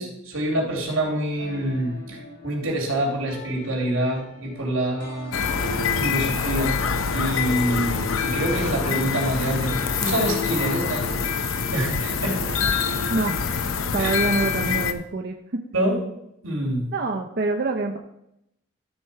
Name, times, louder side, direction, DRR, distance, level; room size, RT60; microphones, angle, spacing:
voice 1, 0.0-5.3 6.0-6.8 7.1-11.2 11.7-13.1 14.0-14.1 15.7-16.0 16.4-16.9, right 1 dB, 90° right, 0 dB, 3.1 m, -26 dB
sound 1, 1.4-11.2, left 2 dB, 55° left, 2.8 m, -39 dB
sound 2, 5.3-14.9, left 5 dB, 85° left, 0.7 m, -25 dB
voice 2, 13.9-15.6 16.9-18.0, right 3 dB, 50° right, 3 dB, 0.6 m, -25 dB
12.0 x 4.4 x 5.6 m, 0.80 s
head